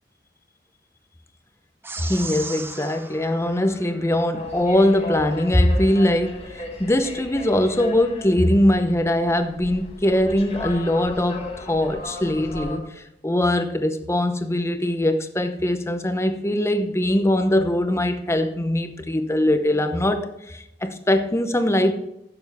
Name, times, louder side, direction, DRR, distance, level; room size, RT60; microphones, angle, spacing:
sound 1, 1.8-4.5, right 3 dB, 15° right, 0.6 m, -37 dB
voice 1, 2.1-21.9, left 1 dB, 15° left, 0.8 m, -21 dB
sound 2, 4.3-12.8, left 2 dB, 35° left, 1.8 m, -36 dB
16.0 x 7.0 x 3.5 m
head